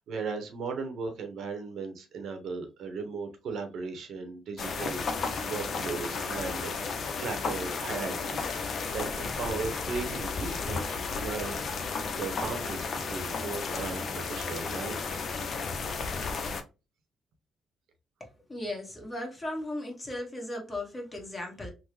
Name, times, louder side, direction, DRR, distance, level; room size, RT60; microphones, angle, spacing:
voice 1, 0.0-6.9 7.2-15.1, right 4 dB, 70° right, 0.8 m, -37 dB
sound 1, 4.6-16.6, left 4 dB, 55° left, 0.5 m, -33 dB
voice 2, 18.5-21.7, left 1 dB, 20° left, 1.3 m, -36 dB
3.5 x 2.1 x 3.0 m
cardioid pair, 90°, 0 cm